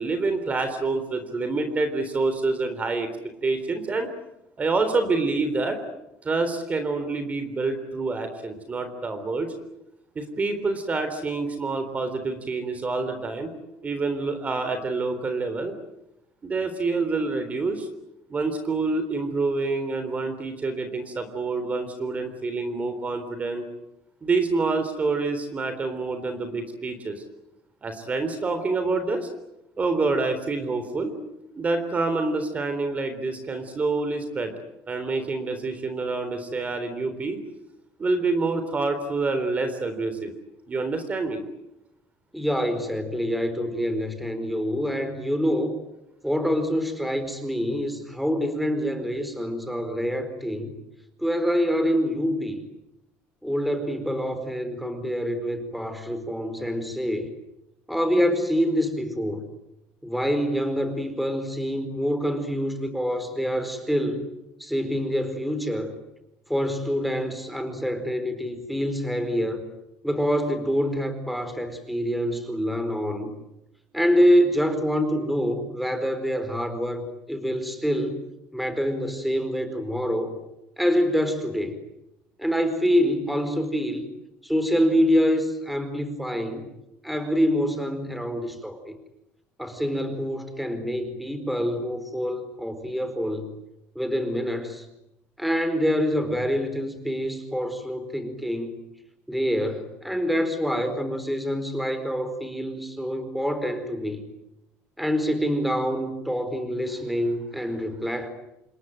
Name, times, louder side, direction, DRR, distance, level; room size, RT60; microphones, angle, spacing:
voice 1, 0.0-3.1 3.4-4.1 4.6-5.8 6.2-9.5 10.2-13.5 13.8-15.7 16.4-17.9 18.3-23.6 24.2-27.2 27.8-29.3 29.8-31.1 31.6-34.5 34.9-37.4 38.0-40.3 40.7-41.4, right 3 dB, 30° right, 8 dB, 3.8 m, -27 dB
voice 2, 42.3-45.8 46.2-50.7 51.2-52.6 53.4-57.3 57.9-59.4 60.0-64.3 64.6-65.9 66.5-69.6 70.0-73.3 73.9-77.0 77.3-78.2 78.5-80.3 80.8-81.8 82.4-84.1 84.4-86.7 87.0-88.9 89.6-93.5 93.9-94.9 95.4-98.8 99.3-104.2 105.0-108.3, equal, ahead, 9 dB, 4.6 m, -26 dB
27.5 x 21.5 x 9.3 m, 0.88 s
cardioid pair, 115°, 5 cm